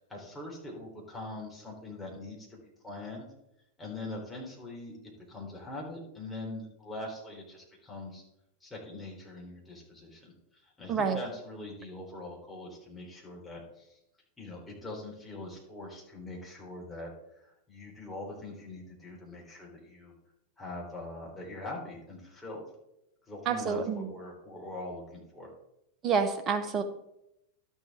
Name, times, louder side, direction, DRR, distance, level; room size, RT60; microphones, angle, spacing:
voice 1, 0.1-3.3 3.8-8.2 8.6-14.0 14.4-20.1 20.6-22.6 23.3-25.5, left 2 dB, 10° left, -3 dB, 3.6 m, -43 dB
voice 2, 23.5-24.1 26.0-26.8, right 6 dB, 30° right, 8 dB, 1.1 m, -28 dB
12.0 x 7.4 x 3.6 m, 0.83 s
figure-of-eight pair, 90°, 0 cm